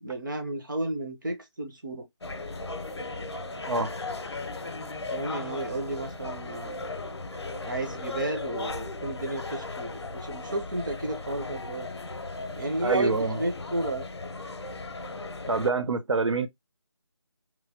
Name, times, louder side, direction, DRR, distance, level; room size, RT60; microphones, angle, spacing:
voice 1, 0.0-2.1 5.1-6.8 7.6-11.9 12.5-14.1, right 1 dB, 45° right, 0.8 m, -32 dB
sound 1, 2.2-15.7, left 2 dB, 65° left, 0.6 m, -36 dB
voice 2, 12.8-13.4 15.5-16.5, right 4 dB, 85° right, 0.6 m, -26 dB
3.1 x 2.1 x 2.7 m
figure-of-eight pair, 175°, 15 cm